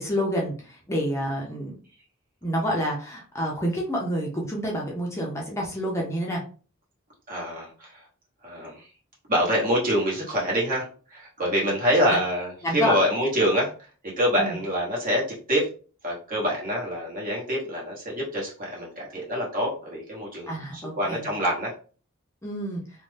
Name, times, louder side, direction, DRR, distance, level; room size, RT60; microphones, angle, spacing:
voice 1, 0.0-1.8 2.4-6.4 12.6-13.0 14.4-14.6 20.5-21.3 22.4-22.8, equal, 15° left, -2 dB, 0.5 m, -28 dB
voice 2, 7.3-8.0 8.4-8.8 9.3-10.8 11.1-13.9 14.2-15.7 16.0-21.7, equal, 40° right, -3 dB, 1.1 m, -26 dB
2.6 x 2.1 x 3.2 m, 0.38 s
head